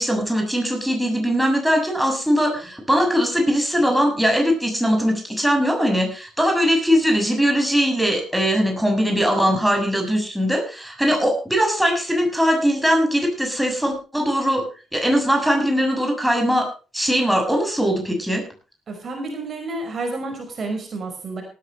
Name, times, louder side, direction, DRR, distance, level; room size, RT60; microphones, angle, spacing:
voice 1, 0.0-14.6 14.9-18.4, equal, ahead, 3 dB, 6.9 m, -20 dB
voice 2, 18.9-21.4, right 2 dB, 45° right, 4 dB, 5.3 m, -30 dB
18.5 x 13.5 x 3.3 m, 0.35 s
figure-of-eight pair, 45°, 0 cm